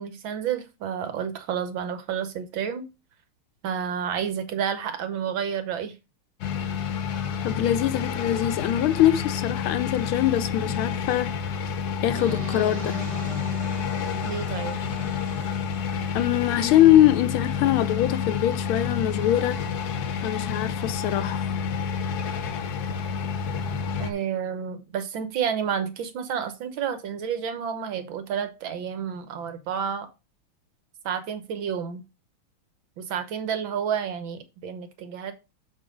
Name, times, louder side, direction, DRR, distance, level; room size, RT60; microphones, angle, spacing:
voice 1, 0.0-2.9 3.6-6.0 14.2-14.8 24.0-30.1 31.1-32.0 33.0-35.3, right 8 dB, 65° right, 1.8 m, -30 dB
sound 1, 6.4-24.1, left 6 dB, 60° left, 1.1 m, -29 dB
voice 2, 7.4-11.3 12.0-13.0 16.1-19.6 20.2-21.5, left 12 dB, 80° left, 1.4 m, -22 dB
sound 2, 12.1-17.1, right 4 dB, 50° right, 1.8 m, -41 dB
6.8 x 4.6 x 5.2 m
omnidirectional pair, 2.4 m